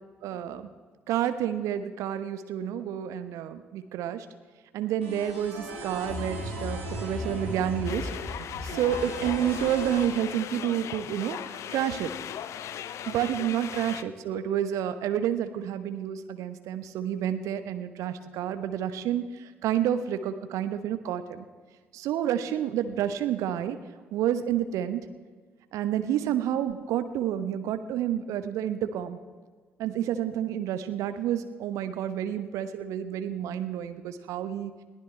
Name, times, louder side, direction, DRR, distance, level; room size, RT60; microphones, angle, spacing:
voice 1, 0.2-0.7 1.1-4.3 4.7-12.1 13.1-21.4 21.9-23.8 24.1-25.0 25.7-29.2 29.8-34.7, right 10 dB, 60° right, 10 dB, 1.0 m, -29 dB
sound 1, 5.0-10.1, equal, 80° right, 3.3 m, -36 dB
sound 2, 7.8-14.0, left 10 dB, 50° left, 0.6 m, -38 dB
21.5 x 15.5 x 3.4 m, 1.5 s
figure-of-eight pair, 45°, 6 cm